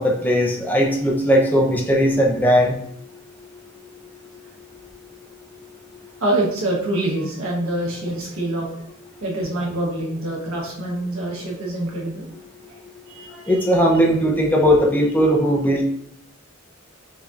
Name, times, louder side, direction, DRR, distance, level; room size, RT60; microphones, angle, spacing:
voice 1, 0.0-2.7 13.5-15.8, equal, 10° left, -1 dB, 0.6 m, -18 dB
voice 2, 6.2-8.7 9.2-12.3 12.7-12.8 13.1-13.7, right 1 dB, 75° right, -3 dB, 1.3 m, -25 dB
6.0 x 2.8 x 2.5 m, 0.68 s
head